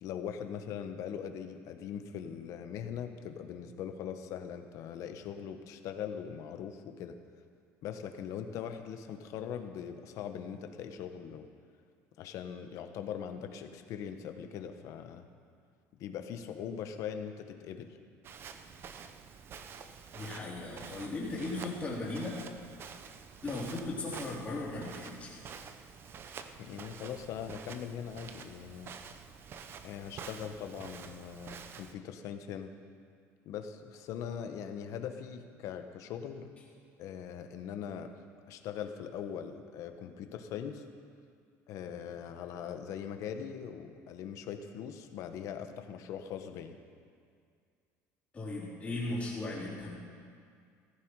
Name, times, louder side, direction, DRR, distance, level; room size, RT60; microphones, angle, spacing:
voice 1, 0.0-7.2 7.8-11.5 12.2-15.3 16.0-18.0 26.6-28.9 29.8-32.7 33.4-36.5 37.0-38.1 38.5-40.8 41.7-46.8, left 8 dB, 60° left, 7 dB, 1.2 m, -41 dB
Walk footsteps, 18.2-31.9, right 6 dB, 40° right, 0.8 m, -48 dB
voice 2, 20.1-22.4 23.4-25.5 48.3-50.0, left 2 dB, 20° left, -5 dB, 3.8 m, -37 dB
15.0 x 14.5 x 4.8 m, 2.2 s
cardioid pair, 140°, 6 cm